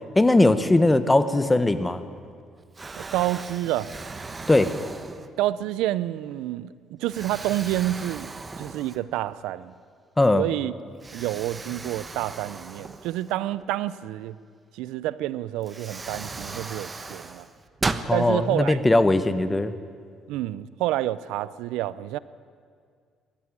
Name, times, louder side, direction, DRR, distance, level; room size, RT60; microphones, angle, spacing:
voice 1, 0.1-2.0 4.5-4.7 10.2-10.5 18.0-19.7, left 2 dB, 15° left, 12 dB, 1.2 m, -19 dB
Explosion, 2.1-2.4 2.8-5.6 6.2-6.4 7.1-9.3 9.7-9.8 11.0-13.7 15.1-15.2 15.6-18.1, right 3 dB, 25° right, 1.1 m, -36 dB
voice 2, 3.0-3.9 5.4-9.7 10.4-10.7 11.1-14.4 14.7-17.5 18.1-18.8 20.3-22.2, right 14 dB, 85° right, 18 dB, 0.5 m, -28 dB
20.5 x 14.0 x 9.8 m, 2.1 s
cardioid pair, 90°, 0 cm